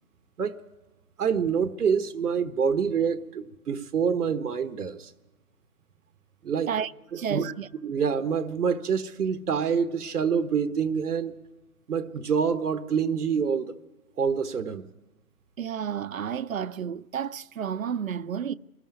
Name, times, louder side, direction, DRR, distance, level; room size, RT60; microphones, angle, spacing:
voice 1, 1.2-5.1 6.4-6.7 7.1-7.5 7.8-11.4 11.9-13.8 14.2-14.9, right 6 dB, 85° right, 1.2 m, -26 dB
voice 2, 6.7-7.7 15.6-18.5, right 8 dB, 65° right, 0.6 m, -31 dB
21.0 x 13.5 x 9.3 m
hypercardioid pair, 175°, 44 cm